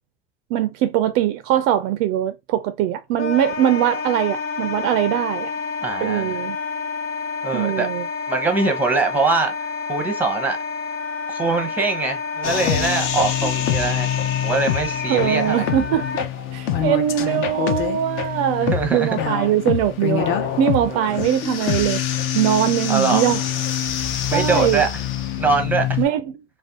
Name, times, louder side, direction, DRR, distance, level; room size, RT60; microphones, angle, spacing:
voice 1, 0.5-5.5 6.0-6.6 7.5-8.1 15.1-16.1 16.5-22.0 22.3-23.4 24.3-24.9 26.0-26.4, right 11 dB, 50° right, 0.4 m, -21 dB
Wind instrument woodwind instrument, 3.2-16.2, left 5 dB, 75° left, 0.9 m, -29 dB
voice 2, 5.8-6.4 7.4-7.9 8.3-10.6 11.3-14.1 14.4-15.7 18.7-19.2 20.9-21.1 22.9-23.3 24.3-25.0 25.4-26.0, right 4 dB, 5° right, 0.8 m, -23 dB
sound 1, 12.4-26.1, left 10 dB, 45° left, 0.6 m, -25 dB
2.5 x 2.2 x 3.4 m
supercardioid pair, 110°, 29 cm